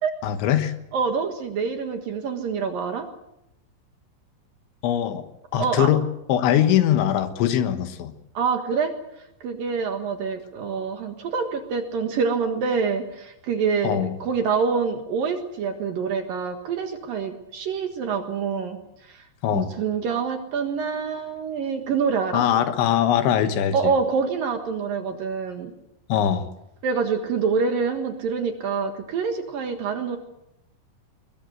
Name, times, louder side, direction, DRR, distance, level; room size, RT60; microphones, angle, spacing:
voice 1, 0.2-0.7 4.8-5.2 5.5-6.0 6.3-8.1 13.8-14.2 19.4-19.7 22.3-23.8 26.1-26.5, left 10 dB, 75° left, 10 dB, 3.6 m, -21 dB
voice 2, 0.9-3.1 5.5-5.9 8.3-8.9 9.4-18.8 19.1-19.3 19.5-22.4 23.7-25.7 26.8-30.2, right 5 dB, 60° right, 6 dB, 2.7 m, -26 dB
21.5 x 21.5 x 8.0 m, 0.83 s
omnidirectional pair, 5.5 m